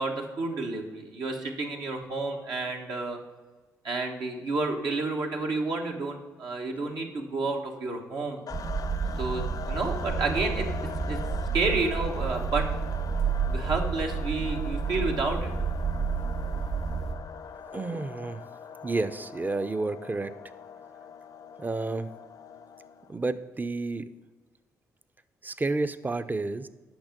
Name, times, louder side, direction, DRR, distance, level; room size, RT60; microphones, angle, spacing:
voice 1, 0.0-3.2 3.8-8.4 9.1-11.2 11.5-12.7 13.5-15.5, right 3 dB, 75° right, 1 dB, 1.4 m, -30 dB
sound 1, 8.5-23.2, left 7 dB, 55° left, 0.5 m, -42 dB
sound 2, 8.5-17.1, right 5 dB, 55° right, 1.4 m, -30 dB
voice 2, 17.7-18.4 18.8-20.4 21.6-22.1 23.1-24.1 25.4-26.7, right 3 dB, 25° right, 13 dB, 0.6 m, -30 dB
8.9 x 5.9 x 5.2 m, 1.3 s
supercardioid pair, 55°, 7 cm